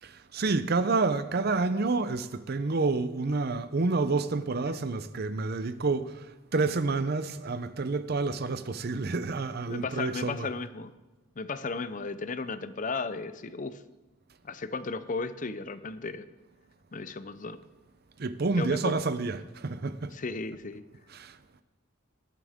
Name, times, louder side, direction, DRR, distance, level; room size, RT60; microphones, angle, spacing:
voice 1, 0.0-10.5 18.2-20.2 21.1-21.4, right 3 dB, 50° right, 0.6 m, -29 dB
voice 2, 9.7-10.9 11.4-13.8 14.4-16.3 16.9-17.6 18.6-18.9 20.1-20.8, left 4 dB, 40° left, 0.6 m, -35 dB
19.0 x 12.5 x 3.6 m
head